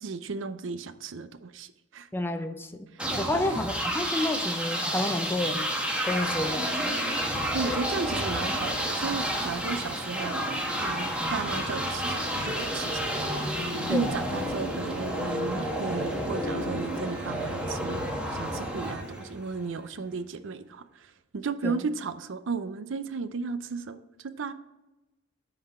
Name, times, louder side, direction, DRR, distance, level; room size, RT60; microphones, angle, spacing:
voice 1, 0.0-2.1 2.9-3.6 7.5-13.0 13.9-18.0 18.3-24.5, right 4 dB, 80° right, 11 dB, 0.5 m, -34 dB
voice 2, 2.1-2.9 3.2-5.7 6.0-6.9 13.9-14.1 21.6-21.8, left 1 dB, 10° left, 8 dB, 0.5 m, -30 dB
sound 1, 3.0-19.7, equal, 5° right, 1.0 m, -30 dB
10.0 x 4.0 x 4.3 m, 1.0 s
head